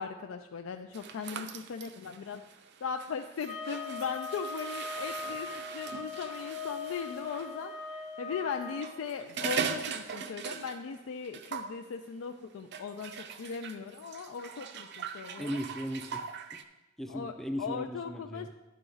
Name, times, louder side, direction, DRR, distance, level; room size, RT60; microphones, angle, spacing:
voice 1, 0.0-2.4 2.8-15.6 17.1-18.5, left 6 dB, 80° left, 6 dB, 0.4 m, -38 dB
sound 1, 0.9-7.5 8.6-11.0 11.2-11.8 12.7-16.6, right 6 dB, 60° right, 0.5 m, -40 dB
sound 2, 3.4-8.9, left 4 dB, 35° left, 0.7 m, -40 dB
voice 2, 15.4-16.6 17.0-18.5, equal, ahead, 6 dB, 0.4 m, -37 dB
11.0 x 4.9 x 3.8 m, 1.1 s
head